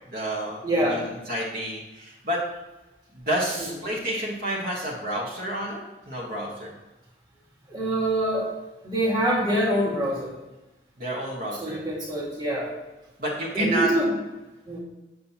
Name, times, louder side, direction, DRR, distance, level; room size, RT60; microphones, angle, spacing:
voice 1, 0.1-2.4 3.1-5.8 6.1-6.7 11.0-11.8 13.2-13.9, right 1 dB, 50° right, -5 dB, 1.3 m, -30 dB
voice 2, 0.6-1.1 7.7-8.6 8.8-10.4 11.6-12.7 13.5-14.1 14.7-14.8, right 1 dB, 25° right, -5 dB, 1.8 m, -25 dB
7.5 x 7.1 x 2.8 m, 1.1 s
head